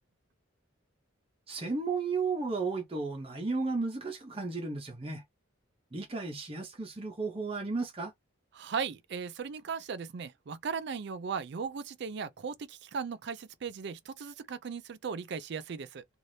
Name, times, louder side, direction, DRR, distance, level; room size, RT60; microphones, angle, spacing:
voice 1, 1.5-5.2 5.9-8.1, right 4 dB, 30° right, 0.7 m, -34 dB
voice 2, 8.5-16.0, right 6 dB, 55° right, 0.4 m, -37 dB
3.2 x 2.5 x 2.7 m
head